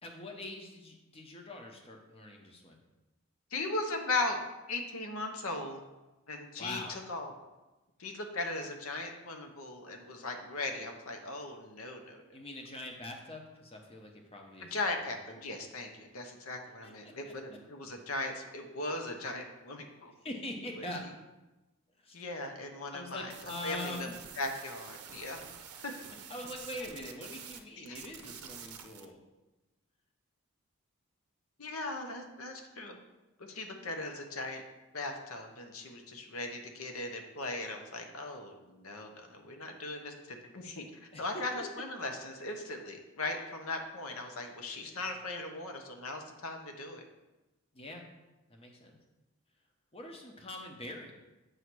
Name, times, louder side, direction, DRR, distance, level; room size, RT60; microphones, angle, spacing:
voice 1, 0.0-2.8 6.6-7.0 12.3-14.8 16.8-17.3 20.2-21.1 22.0-22.2 22.9-24.1 26.3-29.2 41.1-41.2 41.5-41.6 47.7-48.0 48.5-49.0 49.9-51.1, left 1 dB, 25° left, 2 dB, 0.8 m, -43 dB
voice 2, 3.5-4.4 4.7-5.8 6.3-7.3 8.0-12.2 14.6-20.1 22.1-23.3 23.6-24.1 24.4-25.4 25.8-25.9 27.8-28.0 31.6-33.0 33.4-34.6 34.9-47.0, left 2 dB, 70° left, 4 dB, 0.9 m, -38 dB
sound 1, 23.3-27.6 27.9-29.0, right 8 dB, 85° right, 0.6 m, -48 dB
8.0 x 2.8 x 6.1 m, 1.1 s
head